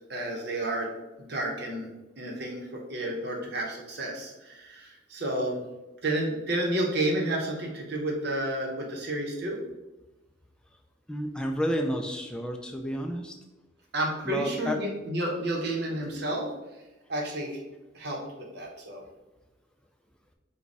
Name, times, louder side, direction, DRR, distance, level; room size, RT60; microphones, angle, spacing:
voice 1, 0.1-0.9 1.3-1.9 2.2-5.6 6.0-9.6 13.9-16.5 17.1-17.6 17.9-19.0, right 1 dB, 55° right, 0 dB, 0.9 m, -31 dB
voice 2, 11.1-13.3 14.2-14.8, equal, 5° left, 3 dB, 0.3 m, -30 dB
4.6 x 2.3 x 4.0 m, 1.1 s
head